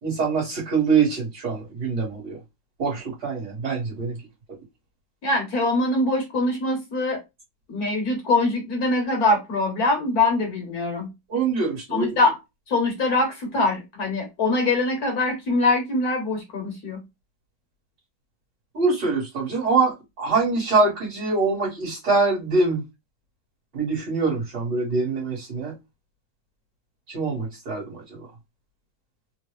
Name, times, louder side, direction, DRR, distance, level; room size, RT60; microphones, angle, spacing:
voice 1, 0.0-2.4 2.8-4.2 11.3-12.2 18.7-22.8 23.7-25.8 27.1-28.3, right 4 dB, 60° right, 2.2 m, -24 dB
voice 2, 5.2-7.2 7.7-11.1 11.9-12.3 12.7-17.0, left 2 dB, 60° left, 1.2 m, -23 dB
4.0 x 2.3 x 3.1 m
omnidirectional pair, 2.1 m